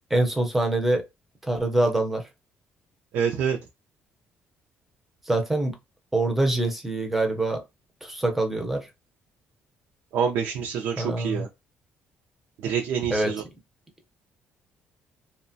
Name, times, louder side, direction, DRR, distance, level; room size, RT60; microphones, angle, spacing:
voice 1, 0.1-1.0 1.4-2.3 5.3-5.8 6.1-7.6 8.0-8.9 11.0-11.5 13.1-13.3, right 2 dB, 5° right, 0.5 m, -24 dB
voice 2, 3.1-3.6 10.1-11.5 12.6-13.4, right 7 dB, 70° right, 0.5 m, -26 dB
2.9 x 2.1 x 2.6 m
cardioid pair, 160°, 4 cm